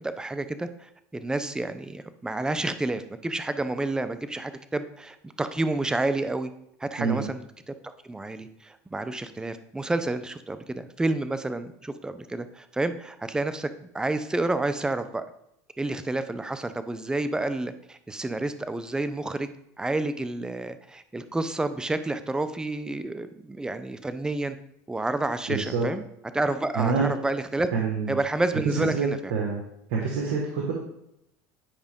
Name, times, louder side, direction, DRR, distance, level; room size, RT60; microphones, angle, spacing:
voice 1, 0.0-6.5 6.8-13.7 13.9-15.2 15.8-19.5 19.8-24.6 24.9-26.0 26.3-27.7 28.1-29.3, right 2 dB, 10° right, 11 dB, 0.6 m, -29 dB
voice 2, 25.5-25.8 26.7-27.1 27.7-28.2 28.6-29.6 29.9-30.7, right 5 dB, 75° right, -2 dB, 1.6 m, -26 dB
9.7 x 4.9 x 3.6 m, 0.78 s
supercardioid pair, 110°, 9 cm